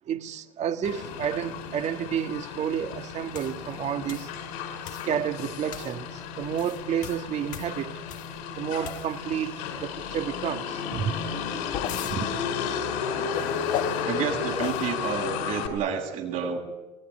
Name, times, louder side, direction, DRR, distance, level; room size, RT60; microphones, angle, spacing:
voice 1, 0.1-4.3 5.0-7.9 8.5-11.1 12.0-12.3, right 9 dB, 55° right, 7 dB, 1.8 m, -30 dB
Motor vehicle (road), 0.8-15.7, left 7 dB, 85° left, 5.3 m, -33 dB
sound 1, 3.3-3.6 4.1-4.3 4.8-5.2 5.7-6.0 6.4-8.4 8.8-9.3 11.3-12.2 13.3-14.0 14.6-14.9, left 11 dB, 65° left, 1.5 m, -37 dB
voice 2, 14.0-16.6, right 7 dB, 70° right, 1 dB, 7.6 m, -30 dB
23.5 x 18.0 x 9.9 m, 1.1 s
supercardioid pair, 90°, 14 cm